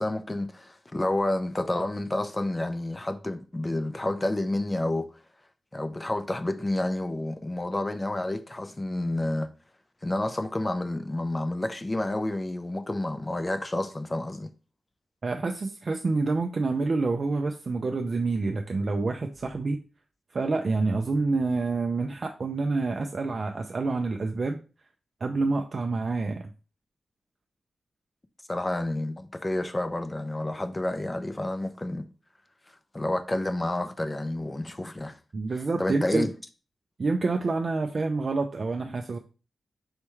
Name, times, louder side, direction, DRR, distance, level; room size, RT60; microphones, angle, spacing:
voice 1, 0.0-5.1 5.7-9.5 10.0-14.5 28.5-32.0 32.9-35.1 35.8-36.3, left 1 dB, 20° left, 0.4 m, -29 dB
voice 2, 15.2-19.8 20.3-24.6 25.2-26.5 35.3-36.3 37.0-39.2, right 3 dB, 45° right, 0.4 m, -27 dB
4.4 x 3.4 x 3.0 m
wide cardioid pair, 115°, 0 cm